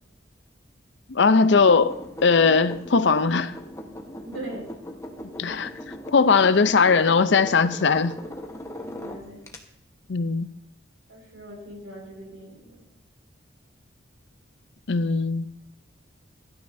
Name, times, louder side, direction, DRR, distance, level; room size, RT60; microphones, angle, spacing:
voice 1, 1.1-2.0 2.2-3.5 5.4-5.7 6.1-8.1 10.1-10.5 14.9-15.4, left 4 dB, 65° left, 0.6 m, -19 dB
sound 1, 1.5-9.6, left 1 dB, 15° left, 1.1 m, -39 dB
voice 2, 4.2-4.7 9.0-9.5 11.1-12.9, right 1 dB, 85° right, 5.1 m, -40 dB
17.0 x 12.5 x 2.7 m
head